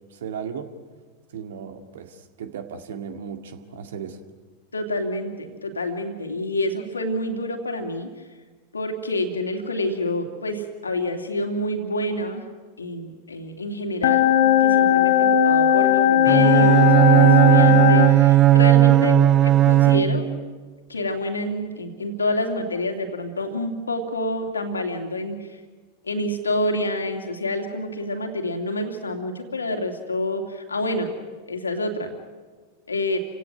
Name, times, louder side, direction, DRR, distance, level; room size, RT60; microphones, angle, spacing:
voice 1, 0.1-0.7 1.3-4.2, right 7 dB, 60° right, 8 dB, 2.0 m, -35 dB
voice 2, 4.7-8.1 8.7-12.4 12.8-19.2 19.4-20.3 20.9-25.6 26.0-31.1 31.5-32.1 32.9-33.2, left 1 dB, 75° left, 4 dB, 2.7 m, -28 dB
sound 1, 14.0-18.1, left 10 dB, 55° left, 1.5 m, -17 dB
Bowed string instrument, 16.3-20.5, right 13 dB, 30° right, 0.7 m, -16 dB
29.5 x 17.0 x 9.2 m, 1.4 s
figure-of-eight pair, 90°, 0 cm